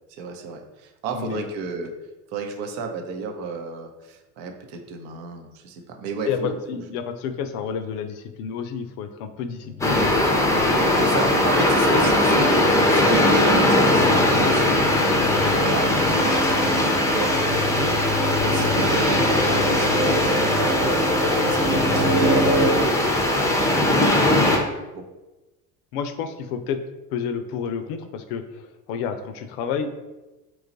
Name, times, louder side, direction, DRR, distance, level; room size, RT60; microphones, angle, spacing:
voice 1, 0.1-1.9 2.3-6.6 11.0-18.0 18.4-21.0 21.3-24.4 24.9-25.0, right 4 dB, 65° right, 4 dB, 0.7 m, -32 dB
voice 2, 1.1-1.5 6.2-10.3 11.0-11.1 25.9-26.8 27.1-29.9, left 6 dB, 65° left, 9 dB, 0.5 m, -30 dB
sound 1, 9.6-22.7, equal, 15° right, 1.1 m, -28 dB
sound 2, 9.8-24.6, left 1 dB, 5° left, 0.5 m, -20 dB
3.0 x 2.3 x 3.8 m, 1.1 s
hypercardioid pair, 70°, 48 cm